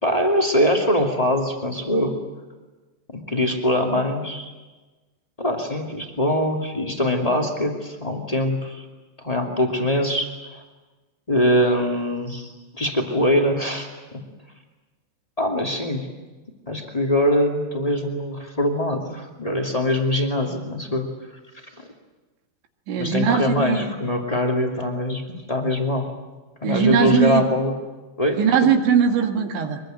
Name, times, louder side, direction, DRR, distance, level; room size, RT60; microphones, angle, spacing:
voice 1, 0.0-2.1 3.1-4.5 5.4-8.9 9.2-10.6 11.3-14.2 15.4-16.0 16.7-21.1 21.8-21.9 22.9-26.1 26.6-27.8 28.2-28.4, left 1 dB, 20° left, 1 dB, 0.9 m, -23 dB
voice 2, 22.9-23.9 26.6-27.4 28.4-29.8, right 7 dB, 75° right, 4 dB, 4.3 m, -20 dB
24.0 x 22.0 x 9.1 m, 1.2 s
omnidirectional pair, 5.5 m